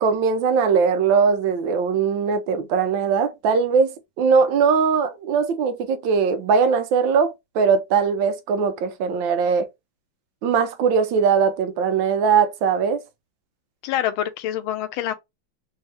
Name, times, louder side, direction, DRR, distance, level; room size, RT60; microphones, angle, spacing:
voice 1, 0.0-9.7 10.4-13.0, right 6 dB, 75° right, 1.3 m, -20 dB
voice 2, 13.8-15.1, left 11 dB, 85° left, 1.4 m, -26 dB
4.2 x 2.8 x 3.2 m
omnidirectional pair, 2.2 m